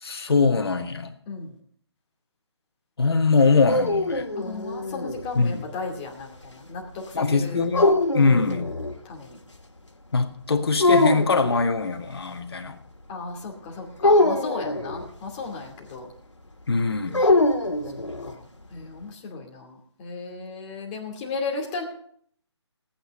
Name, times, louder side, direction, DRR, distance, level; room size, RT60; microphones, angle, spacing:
voice 1, 0.0-1.2 3.0-4.3 5.3-5.6 7.1-7.8 8.1-8.7 10.1-12.8 16.7-17.2, left 4 dB, 55° left, 1.8 m, -22 dB
sound 1, 3.4-5.3 7.7-9.0 10.8-11.6 14.0-15.1 17.1-18.3, left 2 dB, 90° left, 2.0 m, -22 dB
voice 2, 4.4-7.6 9.0-9.4 13.1-16.1 18.2-18.4 18.7-21.8, left 4 dB, 20° left, 2.5 m, -35 dB
17.5 x 9.1 x 5.3 m
figure-of-eight pair, 155°, 15 cm